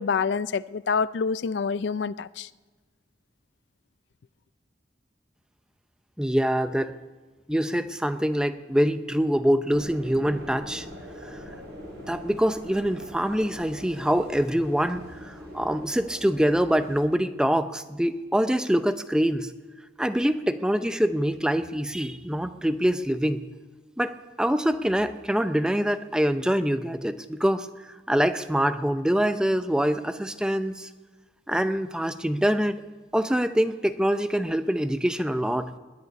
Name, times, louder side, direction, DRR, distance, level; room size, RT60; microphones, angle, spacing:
voice 1, 0.0-2.5, left 5 dB, 80° left, 0.4 m, -27 dB
voice 2, 6.2-6.9 7.5-10.9 12.1-19.5 20.0-23.5 24.0-27.7 28.1-30.9 31.5-32.8 33.1-35.7, equal, 5° right, 0.5 m, -25 dB
sound 1, 9.7-17.0, equal, 70° right, 7.1 m, -43 dB
20.0 x 6.7 x 10.0 m
head